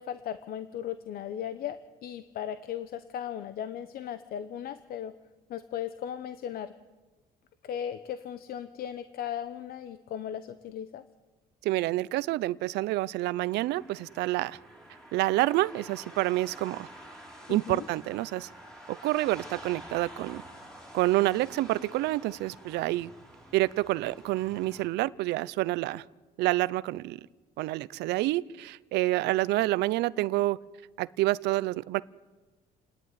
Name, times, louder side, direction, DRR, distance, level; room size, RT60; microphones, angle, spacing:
voice 1, 0.0-5.1 5.5-6.7 7.6-11.0 17.5-17.9, left 9 dB, 60° left, 12 dB, 0.9 m, -37 dB
voice 2, 11.6-14.6 15.1-16.9 17.5-18.5 18.9-20.4 20.9-23.1 23.5-26.0 26.4-27.2 27.6-30.6 31.0-32.0, right 17 dB, 85° right, 19 dB, 0.6 m, -28 dB
sound 1, 13.5-24.9, right 1 dB, 5° left, 4.9 m, -49 dB
29.5 x 11.0 x 9.4 m, 1.2 s
cardioid pair, 110°, 17 cm